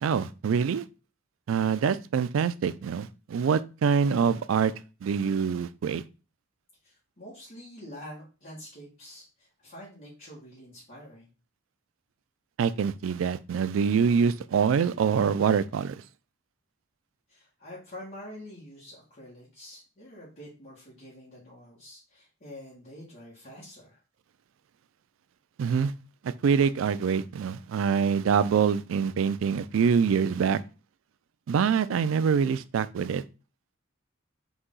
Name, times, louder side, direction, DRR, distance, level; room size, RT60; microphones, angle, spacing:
voice 1, 0.0-0.8 1.5-4.7 5.0-6.0 12.6-16.0 25.6-25.9 26.2-30.6 31.5-33.2, right 6 dB, 90° right, 0.3 m, -25 dB
voice 2, 6.8-11.3 17.3-24.0, left 1 dB, 45° left, 1.5 m, -46 dB
4.0 x 2.9 x 3.7 m
head